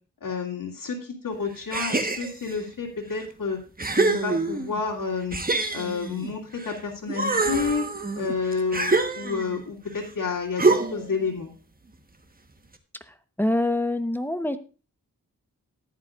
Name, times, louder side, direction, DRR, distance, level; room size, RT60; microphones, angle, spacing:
voice 1, 0.2-3.6 3.9-5.4 5.7-7.9 8.2-11.5, left 5 dB, 85° left, -2 dB, 2.8 m, -30 dB
sound 1, 1.7-2.6 3.2-3.3 3.8-4.8 5.3-6.7 7.1-9.6 10.6-11.2, right 3 dB, 25° right, 1.3 m, -25 dB
voice 2, 13.4-14.6, left 1 dB, 5° left, 9 dB, 1.0 m, -25 dB
14.0 x 10.5 x 2.5 m, 0.34 s
wide cardioid pair, 110°, 33 cm